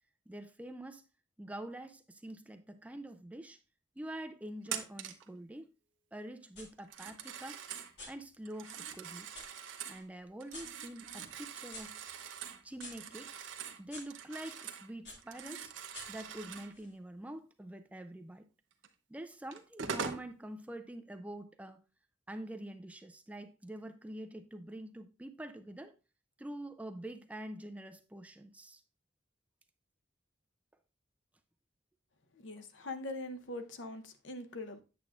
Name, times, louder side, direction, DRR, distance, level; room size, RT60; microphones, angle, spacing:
voice 1, 0.3-1.0 1.4-3.6 4.0-5.7 6.1-7.6 8.0-9.3 9.9-12.0 12.6-13.5 13.8-15.7 16.1-18.5 19.1-21.8 22.3-25.9 26.4-28.8, right 1 dB, 5° right, 0.3 m, -46 dB
Telephone, 4.7-5.3 6.8-7.9 8.5-10.0 10.4-14.9 15.2-16.7 18.8-18.9 19.5-20.3, right 7 dB, 85° right, 0.7 m, -43 dB
sound 1, 6.5-6.7 7.2-9.5 9.9-14.6 15.0-16.9, left 2 dB, 60° left, 2.4 m, -53 dB
voice 2, 32.3-34.8, left 2 dB, 80° left, 0.8 m, -42 dB
8.5 x 7.3 x 2.4 m
head